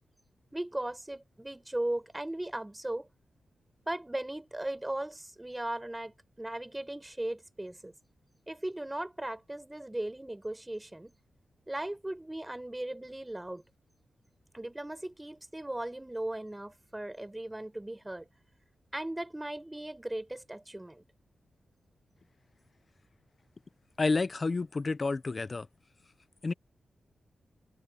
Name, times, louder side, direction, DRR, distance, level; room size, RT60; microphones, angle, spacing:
voice 1, 0.5-3.1 3.9-7.9 8.5-11.1 11.7-13.6 14.5-18.3 18.9-21.1, right 1 dB, 15° right, 6.7 m, -37 dB
voice 2, 24.0-25.7 26.4-26.5, left 3 dB, 40° left, 0.9 m, -29 dB
cardioid pair, 60°, 0 cm